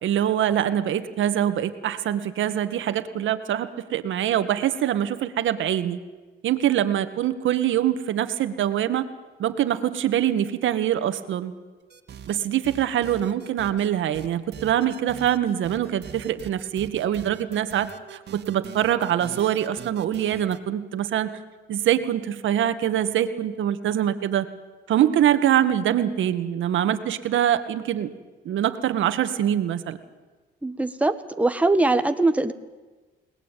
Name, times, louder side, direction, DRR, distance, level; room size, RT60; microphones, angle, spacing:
voice 1, 0.0-6.0 6.4-9.1 9.4-11.5 12.3-21.4 21.7-24.5 24.9-28.1 28.5-30.0, right 11 dB, 75° right, 10 dB, 1.9 m, -24 dB
sound 1, 11.9-12.4 12.6-13.9 14.1-20.6, right 8 dB, 60° right, 2.3 m, -42 dB
voice 2, 30.6-32.5, right 2 dB, 5° right, 8 dB, 1.6 m, -22 dB
29.5 x 19.5 x 9.3 m, 1.3 s
cardioid pair, 90°, 20 cm